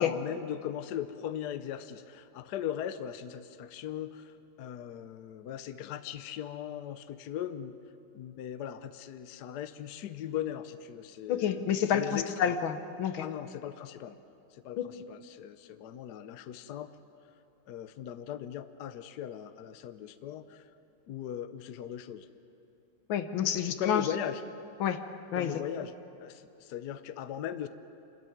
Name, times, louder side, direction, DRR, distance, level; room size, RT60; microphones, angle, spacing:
voice 1, 0.0-7.8 8.1-11.6 11.9-12.5 13.2-14.2 14.5-16.9 17.7-20.7 21.1-22.3 23.7-24.4 25.3-25.9 26.2-27.7, left 10 dB, 65° left, 11 dB, 1.2 m, -39 dB
voice 2, 11.3-13.3 14.8-14.9 23.1-24.1 24.8-25.0 25.3-25.6, left 8 dB, 85° left, 9 dB, 1.8 m, -29 dB
27.0 x 13.5 x 9.3 m, 2.7 s
omnidirectional pair, 2.1 m